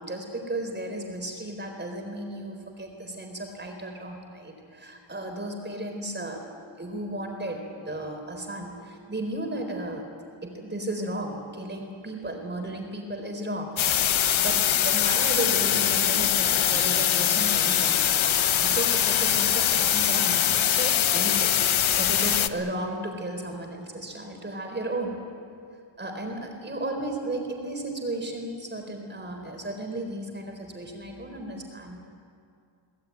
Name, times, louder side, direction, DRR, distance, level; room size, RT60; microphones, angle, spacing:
voice 1, 0.0-6.4 6.8-10.0 10.4-21.5 22.0-25.2 26.0-32.0, right 1 dB, 20° right, 3 dB, 4.0 m, -34 dB
sound 1, 13.8-22.5, left 10 dB, 70° left, 0.9 m, -23 dB
23.5 x 19.0 x 9.5 m, 2.3 s
wide cardioid pair, 175°, 49 cm